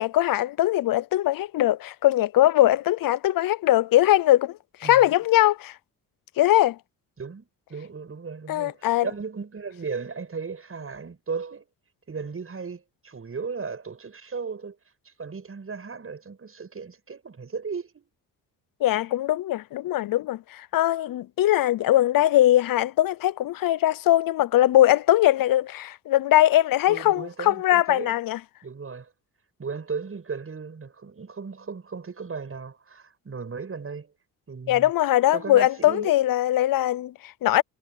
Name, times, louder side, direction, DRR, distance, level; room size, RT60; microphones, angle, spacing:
voice 1, 0.0-5.7 6.4-6.8 8.5-9.0 18.8-28.4 34.7-37.6, left 14 dB, 70° left, 0.7 m, -21 dB
voice 2, 4.8-5.1 7.2-11.7 12.1-14.8 15.0-18.1 26.9-28.2 28.6-29.1 29.6-34.1 34.5-34.9 35.3-36.1, right 5 dB, 40° right, 7.9 m, -36 dB
cardioid pair, 80°, 35 cm